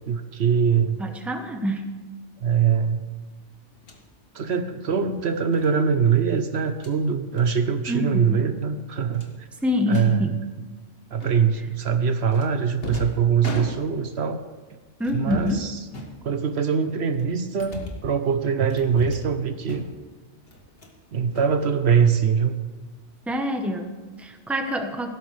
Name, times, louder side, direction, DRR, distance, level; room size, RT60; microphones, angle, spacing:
voice 1, 0.1-1.0 2.4-3.0 4.3-9.3 9.9-10.2 11.1-14.4 15.1-15.8 16.2-19.9 21.1-22.6, right 6 dB, 65° right, 8 dB, 1.0 m, -23 dB
voice 2, 1.0-1.9 7.9-8.5 9.6-10.4 15.0-15.7 23.3-25.1, left 1 dB, ahead, 5 dB, 0.9 m, -26 dB
sound 1, 3.8-4.0 5.5-5.7 6.6-7.0 7.4-7.6 7.9-8.1 8.4-8.5 9.1-10.1 11.2-11.6 12.3-14.2 15.0-15.6 15.9-16.6 17.1-18.1 18.7-19.4 19.6-20.1 20.5-21.0 21.3-22.1, left 1 dB, 55° left, 1.7 m, -38 dB
16.5 x 12.5 x 3.3 m, 1.3 s
omnidirectional pair, 1.2 m